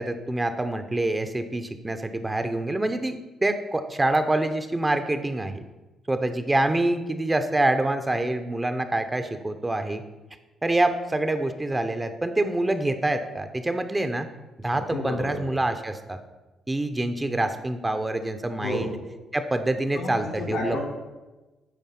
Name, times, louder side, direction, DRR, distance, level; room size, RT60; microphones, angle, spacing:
voice 1, 0.0-5.6 6.1-10.0 10.6-14.3 14.6-16.2 16.7-19.0 19.3-20.8, right 2 dB, 15° right, 8 dB, 0.7 m, -26 dB
voice 2, 14.7-15.5 18.6-18.9 19.9-20.8, left 2 dB, 80° left, 0 dB, 3.1 m, -32 dB
9.2 x 4.4 x 5.8 m, 1.1 s
cardioid pair, 90°, 0 cm